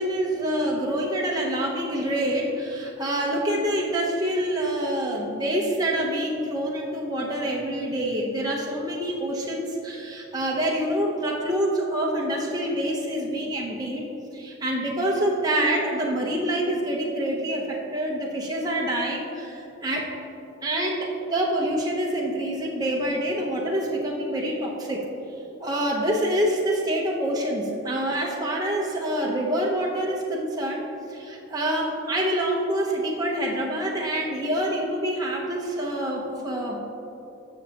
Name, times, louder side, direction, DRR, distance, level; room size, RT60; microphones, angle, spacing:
voice 1, 0.0-14.1 14.3-20.1 20.6-25.1 25.6-30.8 31.1-36.8, right 1 dB, 20° right, -3 dB, 1.0 m, -26 dB
14.0 x 6.4 x 3.0 m, 2.8 s
head